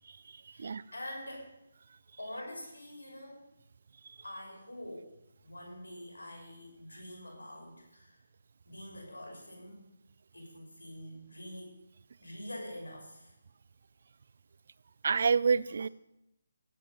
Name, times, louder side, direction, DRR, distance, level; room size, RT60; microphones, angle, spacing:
voice 1, 0.5-1.5 2.2-3.4 4.2-8.2 8.6-9.9 10.3-11.8 12.2-13.3, left 1 dB, 80° left, 0 dB, 6.2 m, -45 dB
voice 2, 15.0-15.9, right 5 dB, 50° right, 20 dB, 0.4 m, -27 dB
16.0 x 9.2 x 5.6 m, 0.86 s
figure-of-eight pair, 145°, 0 cm